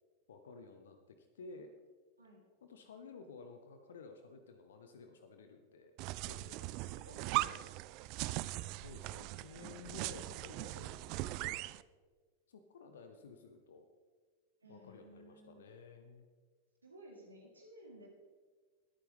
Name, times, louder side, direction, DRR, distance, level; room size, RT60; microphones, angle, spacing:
voice 1, 0.3-1.7 2.6-5.9 6.3-6.7 8.5-11.7 12.5-13.9 14.7-16.3, left 4 dB, 65° left, 7 dB, 0.9 m, -54 dB
sound 1, 6.0-11.8, right 18 dB, 45° right, 0.3 m, -40 dB
voice 2, 6.7-7.5 14.6-15.6 16.8-18.1, right 1 dB, 80° right, -3 dB, 3.7 m, -56 dB
20.5 x 9.2 x 3.6 m, 1.4 s
figure-of-eight pair, 90°, 0 cm